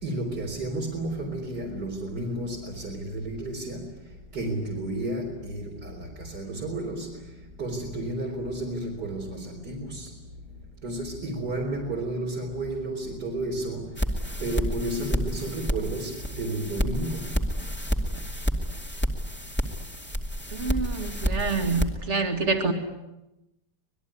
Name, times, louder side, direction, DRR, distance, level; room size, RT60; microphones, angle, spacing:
voice 1, 0.0-3.9 4.3-7.1 7.6-10.1 10.8-13.9 14.4-17.3, right 1 dB, 65° right, -2 dB, 4.3 m, -32 dB
sound 1, 14.0-21.9, equal, 5° left, 2.3 m, -29 dB
voice 2, 20.5-22.7, right 4 dB, 40° right, 5 dB, 2.8 m, -27 dB
25.5 x 20.5 x 9.7 m, 0.95 s
omnidirectional pair, 1.9 m